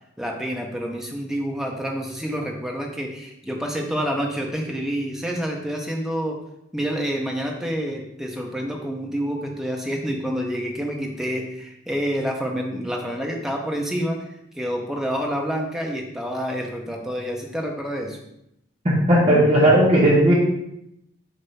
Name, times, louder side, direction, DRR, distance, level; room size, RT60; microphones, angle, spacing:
voice 1, 0.2-6.4 6.7-14.3 14.5-18.2, equal, ahead, 0 dB, 0.9 m, -28 dB
voice 2, 18.8-20.3, right 1 dB, 30° right, -6 dB, 1.4 m, -16 dB
6.8 x 2.9 x 5.7 m, 0.79 s
head